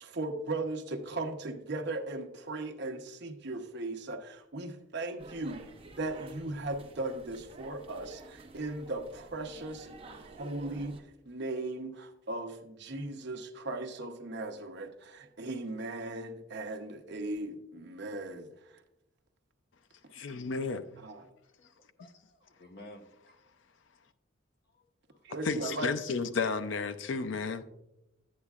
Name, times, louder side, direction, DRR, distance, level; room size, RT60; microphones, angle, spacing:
voice 1, 0.0-5.6 5.9-18.8 21.0-21.2 25.2-25.9, right 2 dB, 60° right, 0.9 m, -38 dB
sound 1, 5.2-11.0, right 3 dB, 30° right, 0.8 m, -50 dB
voice 2, 20.1-20.8 25.5-27.6, left 4 dB, 75° left, 0.5 m, -32 dB
voice 3, 21.6-23.4 24.7-25.2, left 1 dB, 55° left, 1.1 m, -54 dB
11.0 x 8.4 x 2.4 m
head